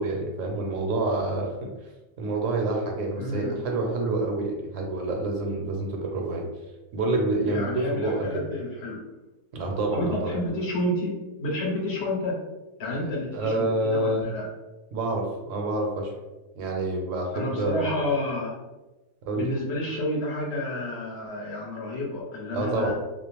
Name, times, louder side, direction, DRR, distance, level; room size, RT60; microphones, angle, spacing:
voice 1, 0.0-1.7 2.2-6.5 6.9-8.5 9.5-10.4 13.0-14.3 14.9-16.1 16.6-17.9 19.2-19.5 22.5-22.9, right 2 dB, 75° right, 1 dB, 0.9 m, -27 dB
voice 2, 3.2-3.6 7.4-9.0 9.9-12.4 12.8-14.4 17.3-18.5 19.3-22.9, left 1 dB, 60° left, -3 dB, 0.8 m, -30 dB
2.4 x 2.0 x 3.0 m, 1.1 s
omnidirectional pair, 1.4 m